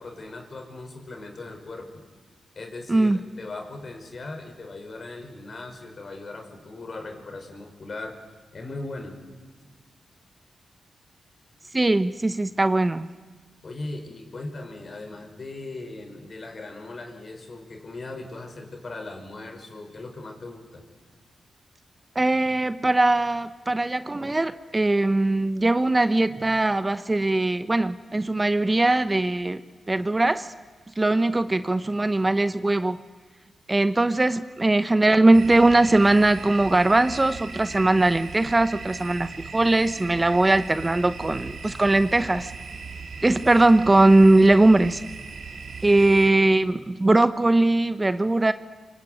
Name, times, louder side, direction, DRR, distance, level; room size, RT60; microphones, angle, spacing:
voice 1, 0.0-2.0 2.6-8.2 8.5-9.2 13.6-20.9, left 2 dB, 50° left, 4 dB, 5.4 m, -38 dB
voice 2, 2.9-3.2 11.7-13.1 22.1-29.6 29.9-30.5 31.0-33.0 33.7-42.5 43.2-45.0 45.8-48.5, right 2 dB, 25° right, 12 dB, 1.0 m, -20 dB
sound 1, 35.3-46.3, right 4 dB, 75° right, 3.3 m, -38 dB
25.0 x 25.0 x 9.4 m, 1.4 s
cardioid pair, 60°, 0 cm